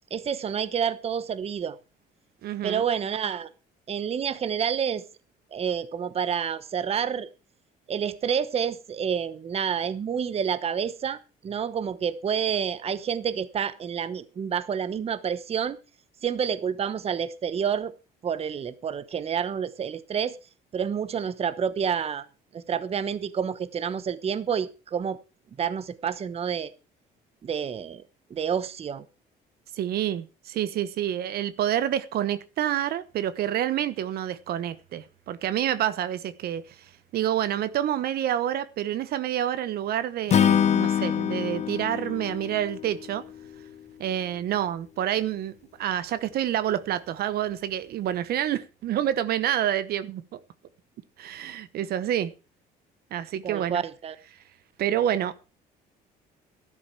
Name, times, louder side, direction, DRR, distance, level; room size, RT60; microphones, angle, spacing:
voice 1, 0.1-1.8 2.6-3.5 3.9-5.0 5.5-7.3 7.9-15.8 16.2-17.9 18.2-20.4 20.7-22.3 22.5-25.2 25.6-26.7 27.4-28.0 28.3-29.0 53.4-54.2, right 7 dB, 35° right, 1.0 m, -29 dB
voice 2, 2.4-2.8 29.7-36.6 37.1-43.2 44.0-45.5 45.8-50.4 51.2-52.3 53.1-53.8 54.8-55.5, right 11 dB, 65° right, 1.0 m, -28 dB
Acoustic guitar / Strum, 40.3-43.6, left 9 dB, 40° left, 0.7 m, -25 dB
12.5 x 11.0 x 4.6 m
cardioid pair, 110°, 17 cm